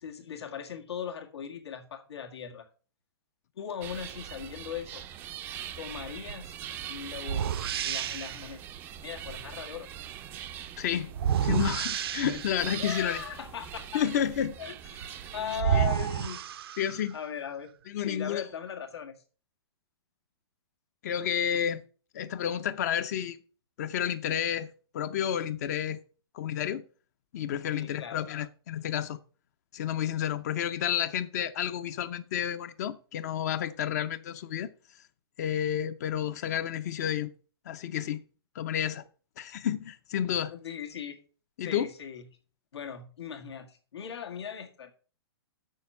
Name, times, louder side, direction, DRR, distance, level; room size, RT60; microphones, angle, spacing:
voice 1, 0.0-2.7 3.6-5.0 5.8-6.6 6.9-8.6 9.0-9.9 12.7-14.0 14.6-16.4 17.1-19.2 27.7-28.3 40.5-41.2 41.6-42.3 42.7-44.9, left 8 dB, 90° left, 1.8 m, -39 dB
sound 1, 3.8-15.6, right 10 dB, 15° right, 0.4 m, -42 dB
sound 2, 6.3-6.5 7.2-8.5 11.1-12.7 15.0-15.1 15.5-17.2, right 9 dB, 65° right, 0.5 m, -29 dB
voice 2, 10.8-11.1 11.4-13.2 13.9-14.5 15.7-15.9 16.8-17.2 17.9-18.4 21.0-21.8 22.1-23.4 23.8-24.7 24.9-26.0 26.3-26.8 27.3-29.2 29.7-34.7 35.4-37.3 37.7-38.2 38.5-39.0 39.4-40.5 41.6-41.9, left 9 dB, 40° left, 0.6 m, -30 dB
7.6 x 6.4 x 5.5 m
hypercardioid pair, 165°, 13 cm